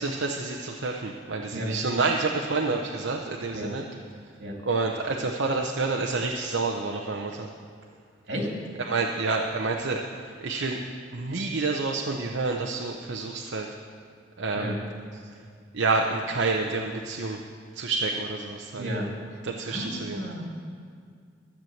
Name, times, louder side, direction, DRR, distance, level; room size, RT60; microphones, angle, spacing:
voice 1, 0.0-3.8 4.6-7.5 8.8-10.8 11.1-13.7 14.4-14.7 15.7-17.4 17.7-18.9 19.4-20.2, right 3 dB, 85° right, 1 dB, 0.8 m, -28 dB
voice 2, 18.7-19.1 19.6-20.4, equal, 65° right, 0 dB, 2.6 m, -32 dB
13.5 x 7.5 x 7.8 m, 2.2 s
head